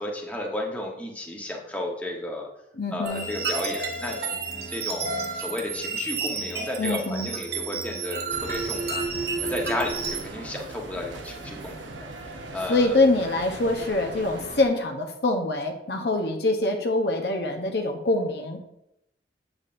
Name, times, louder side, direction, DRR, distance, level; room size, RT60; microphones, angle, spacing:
voice 1, 0.0-2.5 2.9-11.9 12.5-13.0, left 1 dB, 10° left, -1 dB, 1.0 m, -33 dB
voice 2, 2.8-3.3 6.8-7.3 12.7-18.7, left 2 dB, 60° left, 4 dB, 0.8 m, -24 dB
sound 1, 3.0-10.2, right 4 dB, 55° right, 1.2 m, -31 dB
sound 2, 8.3-14.6, right 2 dB, 90° right, 0.9 m, -40 dB
8.1 x 7.3 x 2.5 m, 0.83 s
head